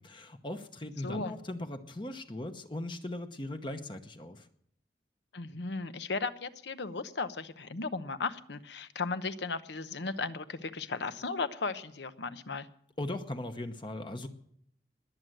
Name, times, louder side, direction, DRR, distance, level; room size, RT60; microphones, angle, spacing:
voice 1, 0.0-4.5 13.0-14.3, left 1 dB, 25° left, 7 dB, 0.9 m, -39 dB
voice 2, 1.0-1.3 5.3-12.7, left 4 dB, 75° left, 12 dB, 0.9 m, -36 dB
20.5 x 7.7 x 7.8 m, 0.68 s
head